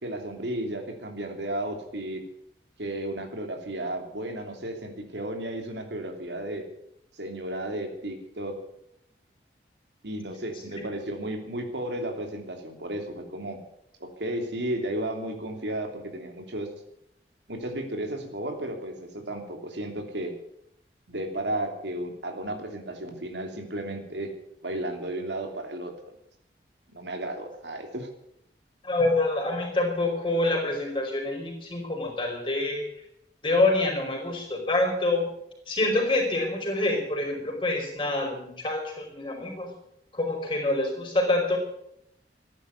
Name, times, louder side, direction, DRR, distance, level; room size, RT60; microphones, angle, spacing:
voice 1, 0.0-2.2 2.8-6.7 7.1-8.6 10.0-13.6 14.0-16.7 17.5-20.3 21.1-24.3 24.6-26.1 26.9-28.1, right 1 dB, 85° right, 4 dB, 2.9 m, -33 dB
voice 2, 28.8-32.8 33.4-35.3 35.7-39.7 40.1-41.6, left 2 dB, 30° left, 1 dB, 5.0 m, -26 dB
14.5 x 11.0 x 8.2 m, 0.75 s
head